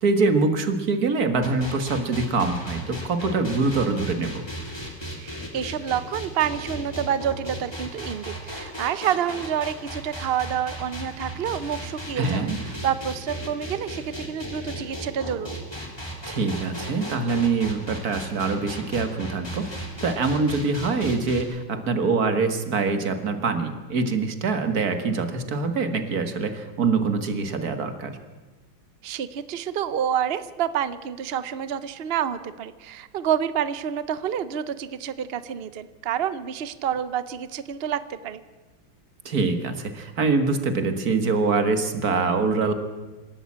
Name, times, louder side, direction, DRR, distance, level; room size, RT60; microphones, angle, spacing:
voice 1, 0.0-4.5 12.2-12.6 16.3-19.7 20.0-28.2 39.3-42.7, right 4 dB, 50° right, 9 dB, 2.1 m, -24 dB
sound 1, 1.4-21.4, right 1 dB, 10° left, 3.1 m, -36 dB
voice 2, 5.2-12.4 12.8-15.6 29.0-38.4, right 9 dB, 85° right, 14 dB, 0.5 m, -28 dB
26.0 x 13.0 x 8.6 m, 1.2 s
omnidirectional pair, 2.2 m